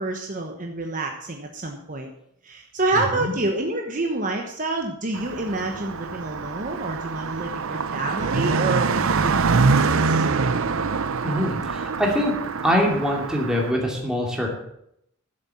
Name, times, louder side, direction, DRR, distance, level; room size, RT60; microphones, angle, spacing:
voice 1, 0.0-2.1 2.4-10.2, right 2 dB, 35° right, 2 dB, 1.1 m, -28 dB
voice 2, 2.9-3.3 11.2-12.3 12.6-14.6, equal, 5° right, -1 dB, 2.6 m, -24 dB
Car passing by, 5.1-13.7, right 4 dB, 65° right, 0.6 m, -24 dB
11.5 x 7.6 x 7.1 m, 0.75 s
head